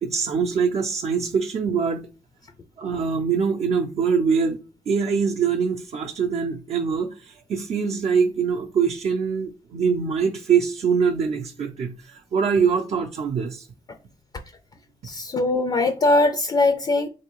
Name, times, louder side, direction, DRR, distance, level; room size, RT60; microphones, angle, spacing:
voice 1, 0.0-2.1 2.8-4.6 4.9-13.7, right 6 dB, 55° right, 0.5 m, -23 dB
voice 2, 15.1-17.1, left 2 dB, 35° left, 0.4 m, -21 dB
3.4 x 2.7 x 3.0 m
cardioid pair, 80°, 13 cm